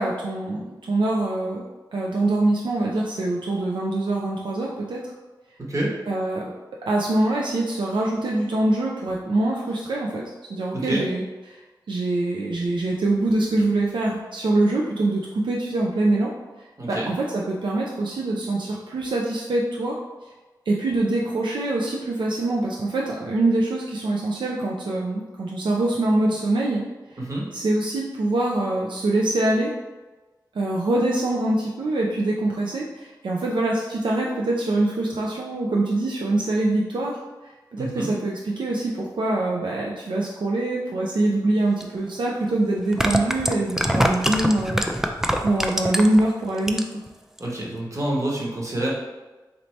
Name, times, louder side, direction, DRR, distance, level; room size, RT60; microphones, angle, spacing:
voice 1, 0.0-1.6 1.9-5.1 6.1-6.4 6.8-10.2 10.5-11.2 11.5-11.6 11.9-16.3 16.6-20.0 20.7-26.8 27.5-29.7 30.5-37.2 37.7-44.8 45.4-47.0, right 2 dB, 80° right, -3 dB, 0.4 m, -24 dB
voice 2, 10.7-11.0 16.8-17.1 27.2-27.5 37.8-38.1 47.4-48.9, right 1 dB, 40° right, -4 dB, 1.2 m, -27 dB
sound 1, 41.8-41.9 42.8-46.2 46.6-47.1 47.4-47.5, equal, 5° right, 0.4 m, -23 dB
4.2 x 2.7 x 3.2 m, 1.2 s
cardioid pair, 60°, 8 cm